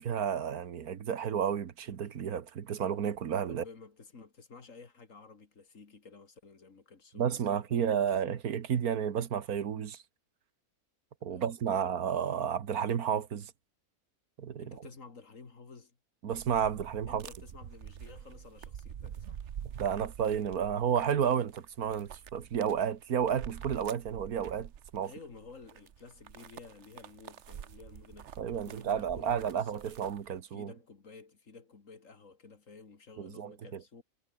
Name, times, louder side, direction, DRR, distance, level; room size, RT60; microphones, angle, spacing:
voice 1, 0.0-3.6 7.1-10.0 11.2-13.5 14.4-14.9 16.2-17.3 19.8-25.1 28.4-30.7 33.2-33.8, right 8 dB, 80° right, 1.7 m, -31 dB
voice 2, 3.5-8.1 11.3-11.9 14.6-16.0 17.1-19.4 25.0-28.3 28.7-30.0 30.5-34.0, left 4 dB, 60° left, 2.7 m, -53 dB
sound 1, 16.3-30.4, right 9 dB, 55° right, 1.1 m, -47 dB
omnidirectional pair, 1.5 m